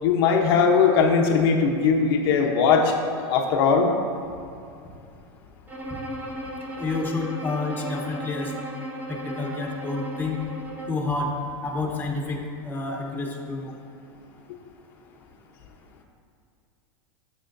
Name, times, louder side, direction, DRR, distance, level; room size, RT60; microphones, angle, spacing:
voice 1, 0.0-3.9, left 5 dB, 65° left, 1 dB, 0.9 m, -20 dB
Bowed string instrument, 5.7-11.1, right 1 dB, 15° right, 0.9 m, -36 dB
voice 2, 6.8-8.5 9.1-10.4 10.9-11.3 11.6-12.4 12.6-13.8, left 3 dB, 15° left, 0 dB, 1.1 m, -29 dB
12.5 x 6.3 x 2.6 m, 2.5 s
supercardioid pair, 130°, 13 cm